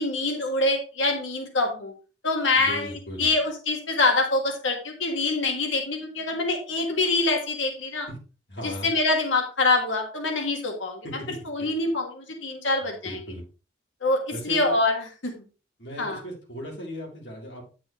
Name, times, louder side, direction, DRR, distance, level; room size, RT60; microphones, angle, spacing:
voice 1, 0.0-1.9 2.2-2.9 3.2-8.1 8.6-11.1 11.5-13.2 14.0-15.3 16.0-16.2, left 2 dB, 85° left, 3 dB, 1.7 m, -25 dB
voice 2, 2.6-3.3 8.1-8.2 8.5-8.9 11.0-11.7 12.8-13.4 14.3-14.8 15.8-17.6, equal, 65° left, -3 dB, 3.3 m, -37 dB
9.2 x 6.1 x 3.1 m, 0.33 s
head